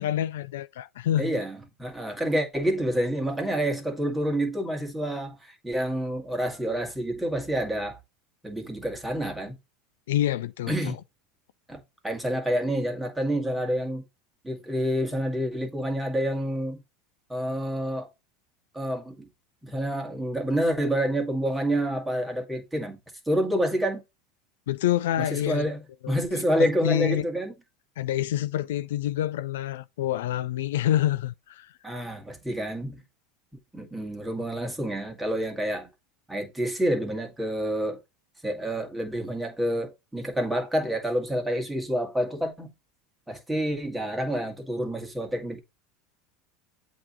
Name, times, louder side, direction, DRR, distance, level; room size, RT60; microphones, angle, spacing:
voice 1, 0.0-1.3 10.1-11.0 24.7-25.7 26.0-26.2 26.6-27.2 28.0-31.7, left 12 dB, 75° left, 0.3 m, -27 dB
voice 2, 1.2-8.0 8.4-9.6 10.7-11.0 11.7-14.0 14.4-16.8 17.3-18.1 18.7-19.3 19.6-23.0 23.3-24.0 25.2-27.5 31.8-33.0 33.7-35.9 36.3-38.0 38.4-42.7 43.3-45.6, equal, 10° right, 1.8 m, -28 dB
7.8 x 3.0 x 4.0 m
hypercardioid pair, 90°, 0 cm